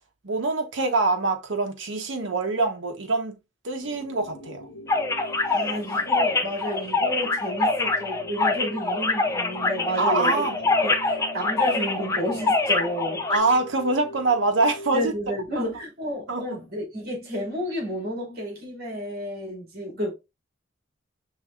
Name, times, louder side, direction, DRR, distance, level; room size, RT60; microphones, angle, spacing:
voice 1, 0.2-3.3 3.6-4.7 10.0-10.6 13.3-15.1 15.6-15.7 16.3-16.4, right 3 dB, 70° right, 0.9 m, -24 dB
sound 1, 3.8-15.1, equal, 60° left, 0.8 m, -42 dB
sound 2, 4.9-13.4, left 3 dB, 15° left, 0.4 m, -25 dB
voice 2, 5.4-10.5 10.8-13.2 14.9-20.1, equal, 50° right, 2.2 m, -31 dB
5.4 x 3.2 x 2.4 m
head